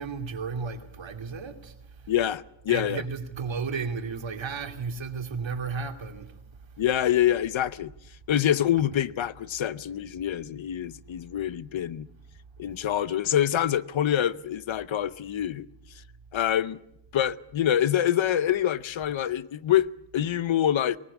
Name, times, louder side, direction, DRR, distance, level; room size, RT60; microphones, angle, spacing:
voice 1, 0.0-2.2 2.7-6.4, right 5 dB, 65° right, 2.6 m, -34 dB
voice 2, 2.1-3.0 6.8-7.9 8.3-12.1 12.6-15.7 16.3-16.8 17.1-21.0, left 11 dB, 70° left, 0.8 m, -26 dB
20.5 x 19.5 x 8.5 m
wide cardioid pair, 130°, 49 cm